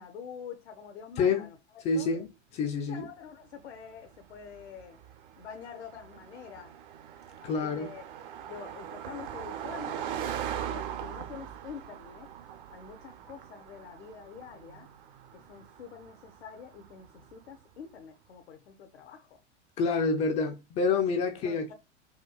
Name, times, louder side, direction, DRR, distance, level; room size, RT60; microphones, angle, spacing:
voice 1, 0.0-1.6 1.9-2.1 2.9-5.0 5.4-6.8 7.4-8.1 8.5-10.1 10.6-12.3 12.7-14.9 15.3-19.4 21.4-21.7, left 7 dB, 65° left, 0.6 m, -46 dB
voice 2, 1.8-2.3 2.5-3.1 7.4-7.9 19.8-21.7, left 4 dB, 20° left, 0.3 m, -27 dB
Car passing by, 3.7-17.4, right 9 dB, 50° right, 0.6 m, -41 dB
4.3 x 2.3 x 2.3 m
figure-of-eight pair, 90°, 35 cm